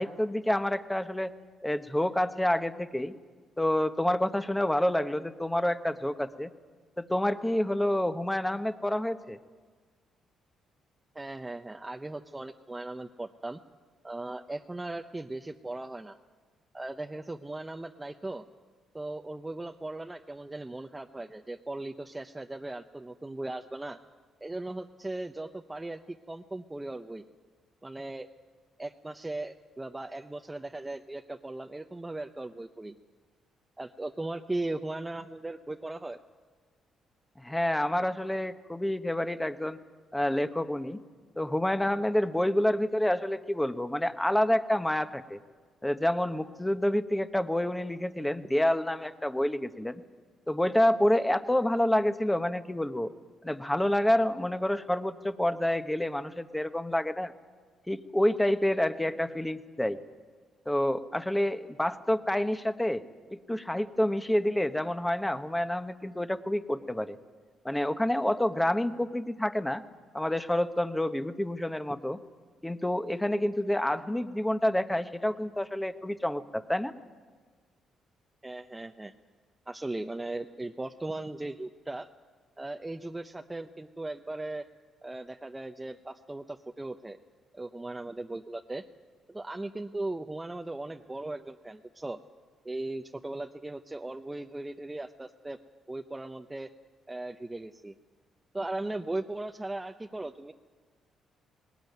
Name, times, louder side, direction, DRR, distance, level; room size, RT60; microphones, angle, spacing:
voice 1, 0.0-1.3 1.6-3.1 3.6-6.5 7.0-9.4 37.4-39.8 40.1-41.0 41.4-45.4 45.8-50.0 50.5-53.1 53.4-57.3 57.9-60.0 60.7-63.0 63.3-67.2 67.6-69.8 70.1-72.2 72.6-76.9, left 1 dB, 10° left, 10 dB, 1.0 m, -28 dB
voice 2, 11.1-13.6 14.0-16.2 16.7-18.5 18.9-24.0 24.4-27.2 27.8-28.3 28.8-33.0 33.8-36.2 78.4-79.1 79.7-82.1 82.6-84.7 85.0-87.2 87.5-88.9 89.3-92.2 92.6-95.6 95.9-96.7 97.1-97.9 98.5-100.5, right 2 dB, 15° right, 5 dB, 0.7 m, -38 dB
20.0 x 18.5 x 9.3 m, 1.5 s
cardioid pair, 90°, 0 cm